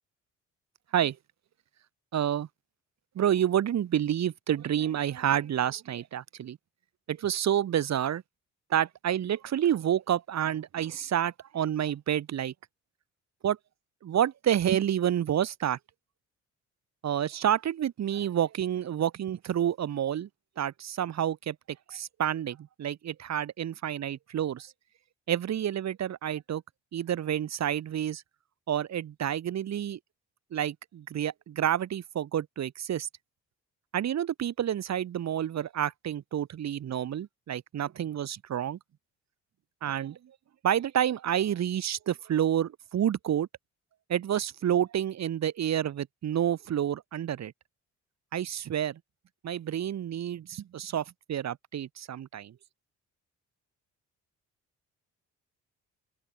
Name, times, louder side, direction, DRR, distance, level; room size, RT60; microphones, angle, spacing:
voice 1, 2.1-2.5 3.2-6.6 7.1-8.2 8.7-12.5 13.4-13.6 14.0-15.8 17.0-20.3 20.6-21.6 21.9-24.7 25.3-26.6 26.9-28.2 28.7-30.0 30.5-33.1 33.9-38.8 39.8-40.2 40.6-43.5 44.1-47.5 48.3-49.0 49.4-52.5, right 10 dB, 60° right, 2.6 m, -29 dB
open air
cardioid pair, 90°, 30 cm